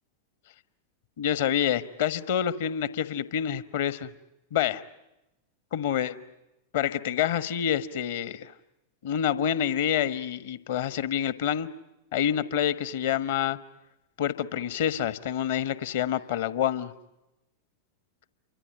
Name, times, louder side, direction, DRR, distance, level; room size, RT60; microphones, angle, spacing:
voice 1, 1.2-4.1 4.5-4.8 5.7-6.2 6.7-8.5 9.0-11.7 12.1-13.6 14.2-16.9, left 9 dB, 55° left, 14 dB, 1.3 m, -27 dB
29.0 x 24.5 x 7.8 m, 0.93 s
figure-of-eight pair, 90°, 0 cm